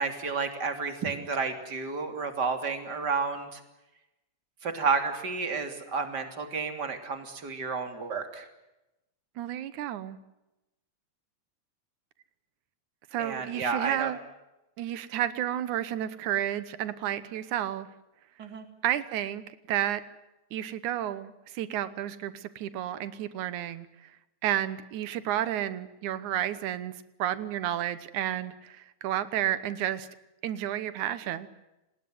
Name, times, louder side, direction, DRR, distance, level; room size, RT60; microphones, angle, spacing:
voice 1, 0.0-3.6 4.6-8.5 13.2-14.1 18.4-18.6, right 4 dB, 35° right, 7 dB, 3.5 m, -31 dB
voice 2, 9.4-10.2 13.1-14.2 14.8-17.9 18.8-20.0 20.5-24.1 24.4-26.9 27.2-30.1 30.4-31.5, right 11 dB, 90° right, 14 dB, 2.5 m, -31 dB
28.5 x 20.0 x 8.0 m, 0.95 s
omnidirectional pair, 3.3 m